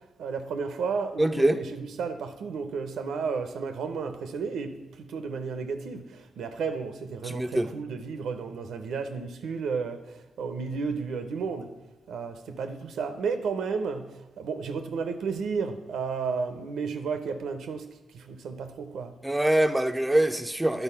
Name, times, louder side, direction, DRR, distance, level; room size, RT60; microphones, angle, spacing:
voice 1, 0.2-11.7 12.1-17.9 18.1-19.1, right 5 dB, 85° right, 0.7 m, -32 dB
voice 2, 1.2-1.6 7.2-7.7 19.2-20.8, right 1 dB, 10° right, 0.6 m, -24 dB
10.0 x 4.1 x 5.6 m
cardioid pair, 65°, 0 cm